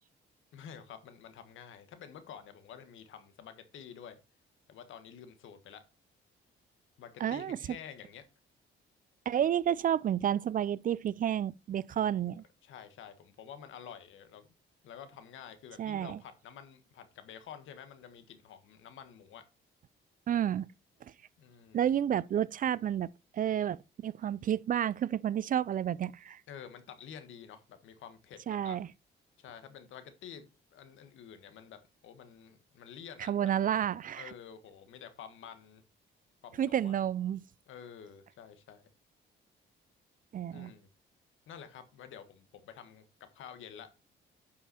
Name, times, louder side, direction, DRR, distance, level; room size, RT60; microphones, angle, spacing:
voice 1, 0.5-4.2 4.7-5.8 7.0-8.2 11.9-14.5 14.8-19.4 21.4-21.8 26.5-28.8 29.4-33.3 34.2-35.8 36.4-37.0 37.7-38.9 40.5-40.9 41.5-44.0, left 8 dB, 80° left, 1.5 m, -50 dB
voice 2, 7.2-7.6 9.3-12.4 15.8-16.2 20.3-20.7 21.7-26.4 28.5-28.9 33.3-34.3 36.6-37.4 40.3-40.7, right 10 dB, 45° right, 0.4 m, -30 dB
9.9 x 5.6 x 4.3 m
cardioid pair, 90°, 20 cm